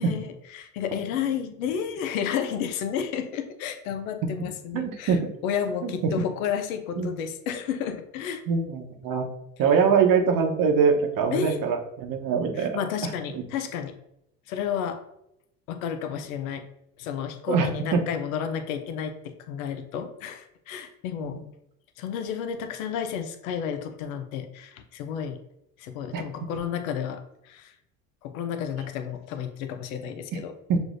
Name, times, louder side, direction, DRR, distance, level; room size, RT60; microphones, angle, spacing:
voice 1, 0.0-8.4 11.3-11.6 12.6-13.9 14.5-15.0 15.7-16.7 17.0-21.4 22.0-25.4 25.8-27.7 28.2-30.5, left 8 dB, 85° left, 8 dB, 0.6 m, -31 dB
voice 2, 4.7-5.2 5.8-6.1 7.0-7.1 8.5-9.2 9.6-13.4 17.5-17.7 21.2-21.4 26.1-26.2 30.7-30.8, right 6 dB, 55° right, 3 dB, 0.9 m, -23 dB
6.2 x 2.6 x 2.5 m, 0.81 s
hypercardioid pair, 75°, 40 cm